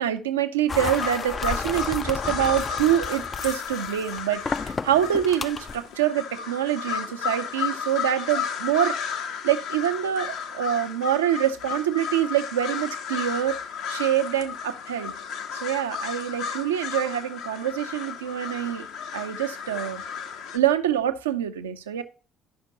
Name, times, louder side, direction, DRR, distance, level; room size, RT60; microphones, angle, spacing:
voice 1, 0.0-9.0 9.4-13.6 13.9-15.1 15.5-18.9 19.1-20.0 20.5-22.0, right 11 dB, 80° right, 8 dB, 0.5 m, -25 dB
sound 1, 0.7-5.8, left 4 dB, 30° left, 0.4 m, -32 dB
sound 2, 0.8-20.6, left 7 dB, 65° left, 0.7 m, -33 dB
13.0 x 5.8 x 2.6 m, 0.38 s
figure-of-eight pair, 50°, 0 cm